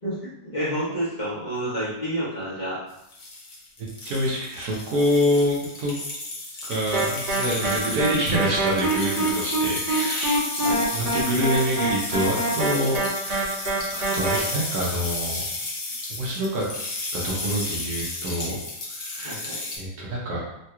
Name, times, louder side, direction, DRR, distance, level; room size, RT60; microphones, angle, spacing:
voice 1, 0.0-2.8 10.6-10.8 19.2-19.6, right 1 dB, 30° left, -11 dB, 1.1 m, -29 dB
sound 1, 3.0-19.8, left 2 dB, 55° left, 0.5 m, -33 dB
voice 2, 4.0-5.9 6.6-10.4 10.9-13.0 13.3-13.5 13.9-15.5 16.1-16.7 17.1-18.6 19.0-19.4 19.8-20.4, equal, 70° right, -4 dB, 1.3 m, -26 dB
sound 2, 6.9-14.4, right 2 dB, 85° right, 1.5 m, -25 dB
3.7 x 2.9 x 2.3 m, 0.83 s
omnidirectional pair, 1.8 m